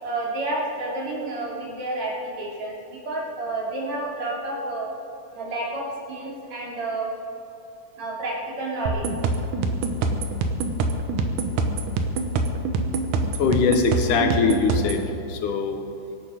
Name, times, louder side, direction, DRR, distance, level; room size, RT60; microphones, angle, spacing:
voice 1, 0.0-4.9 5.3-7.1 8.0-9.0, right 2 dB, 60° right, -4 dB, 4.2 m, -30 dB
sound 1, 8.9-15.0, right 3 dB, 80° right, 2.5 m, -25 dB
voice 2, 12.4-12.7 13.4-15.0 15.3-15.8, left 5 dB, 80° left, 6 dB, 2.7 m, -22 dB
24.5 x 9.3 x 5.1 m, 2.8 s
omnidirectional pair, 3.7 m